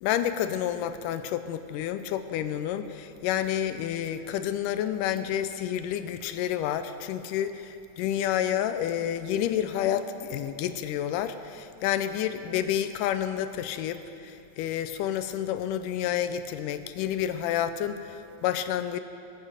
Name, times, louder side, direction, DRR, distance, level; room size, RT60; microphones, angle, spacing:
voice 1, 0.0-19.0, left 10 dB, 80° left, 10 dB, 2.0 m, -29 dB
20.5 x 8.1 x 5.0 m, 2.6 s
omnidirectional pair, 4.1 m